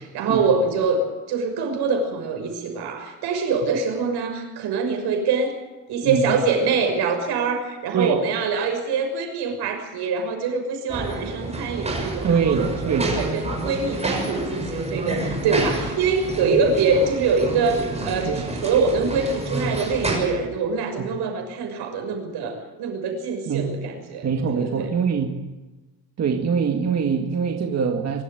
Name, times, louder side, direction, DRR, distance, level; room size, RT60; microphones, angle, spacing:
voice 1, 0.1-1.0 1.3-5.6 5.9-24.9, right 4 dB, 85° right, 4 dB, 6.3 m, -24 dB
voice 2, 6.0-6.4 7.9-8.2 12.2-13.1 18.3-18.4 21.0-21.1 23.5-23.7 24.2-25.3 26.2-28.2, right 6 dB, 40° right, 3 dB, 2.0 m, -23 dB
sound 1, 10.9-20.2, right 2 dB, 15° right, 6.4 m, -29 dB
24.0 x 13.0 x 9.2 m, 1.2 s
cardioid pair, 135°, 39 cm